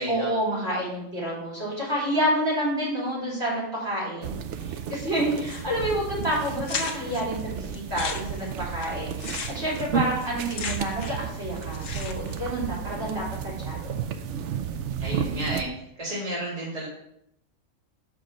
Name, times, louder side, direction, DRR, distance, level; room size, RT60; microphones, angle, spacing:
voice 1, 0.1-4.4 4.6-14.0, equal, 50° right, -6 dB, 3.6 m, -29 dB
sound 1, 4.2-15.6, right 8 dB, 70° right, 0.8 m, -33 dB
sound 2, 5.4-5.9 6.2-6.3 6.6-7.2 7.7-11.3 11.6-12.4, left 5 dB, 70° left, 1.2 m, -35 dB
voice 2, 15.0-15.7 16.0-16.9, right 1 dB, 25° right, -7 dB, 1.8 m, -31 dB
6.0 x 4.9 x 5.1 m, 0.77 s
omnidirectional pair, 1.4 m